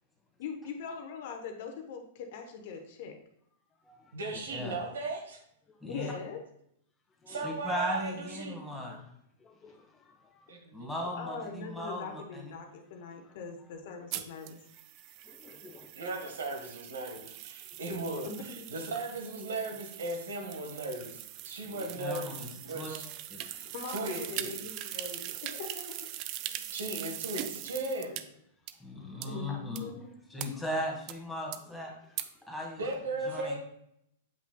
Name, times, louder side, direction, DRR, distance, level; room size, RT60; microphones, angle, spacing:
voice 1, 0.4-3.2 5.8-6.4 11.1-14.6 18.3-18.7 23.7-26.1 29.2-30.1, left 5 dB, 55° left, 0.9 m, -42 dB
voice 2, 4.1-5.4 7.3-8.6 10.5-10.9 15.9-23.1 23.4-23.6 23.9-24.6 26.7-28.2 32.8-33.6, right 2 dB, 70° right, 1.4 m, -37 dB
voice 3, 5.8-6.1 7.4-9.0 10.7-12.6 21.6-22.5 22.7-22.9 23.3-23.4 28.8-29.9 30.3-31.9 32.5-32.8 33.3-33.6, left 1 dB, ahead, 1.9 m, -37 dB
voice 4, 9.4-10.5 10.8-10.9 15.3-15.9 18.1-18.2 21.8-22.0 23.5-23.7 26.5-26.6 29.1-29.3 30.6-30.7, left 5 dB, 20° left, 0.6 m, -55 dB
sound 1, 14.1-28.2 28.7-28.8 29.2-29.3 29.8-29.9 30.4-30.5 31.1-31.2 31.5-31.6 32.2-32.3, right 13 dB, 45° right, 0.4 m, -41 dB
7.6 x 5.8 x 2.3 m
figure-of-eight pair, 100°, 0 cm